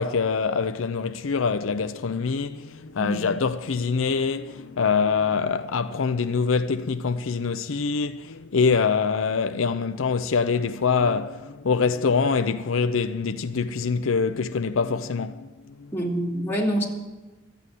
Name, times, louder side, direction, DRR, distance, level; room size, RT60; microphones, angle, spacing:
voice 1, 0.0-15.9, left 5 dB, 85° left, 0.6 m, -24 dB
voice 2, 15.9-16.8, equal, 10° left, 2.7 m, -26 dB
13.0 x 8.8 x 9.1 m
head